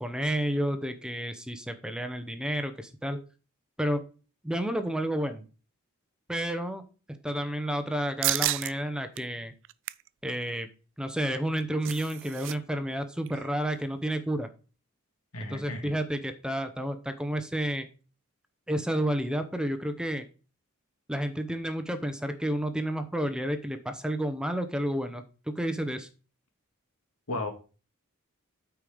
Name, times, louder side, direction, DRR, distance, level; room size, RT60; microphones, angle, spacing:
voice 1, 0.0-3.2 3.8-4.0 4.4-5.5 6.3-6.8 7.2-9.5 10.2-10.7 11.0-14.5 15.5-17.9 18.7-20.3 21.1-26.1, right 1 dB, 5° right, 8 dB, 0.8 m, -30 dB
sound 1, 8.2-8.7 9.2-9.3 9.6-10.1 11.4-12.6 12.8-12.9 13.3-13.5, right 17 dB, 60° right, 0.4 m, -31 dB
voice 2, 15.3-15.9 27.3-27.5, left 2 dB, 85° left, 4 dB, 2.1 m, -34 dB
8.9 x 4.6 x 5.0 m, 0.34 s
head